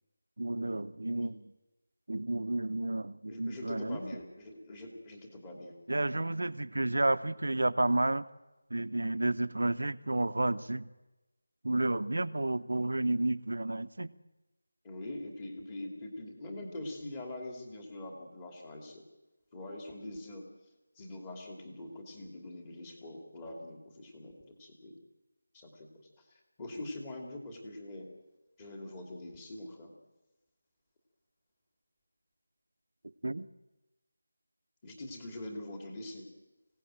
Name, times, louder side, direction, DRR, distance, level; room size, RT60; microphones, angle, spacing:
voice 1, 0.4-1.4 2.1-4.0 5.9-8.2 8.7-10.9 11.6-14.1 33.2-33.5, right 2 dB, 80° right, 13 dB, 1.1 m, -31 dB
voice 2, 3.3-5.7 14.8-19.0 19.5-20.5 21.0-25.0 25.5-28.1 28.6-29.9 34.8-36.3, left 1 dB, 15° left, 2 dB, 2.7 m, -44 dB
25.5 x 17.5 x 9.0 m, 1.1 s
figure-of-eight pair, 175°, 0 cm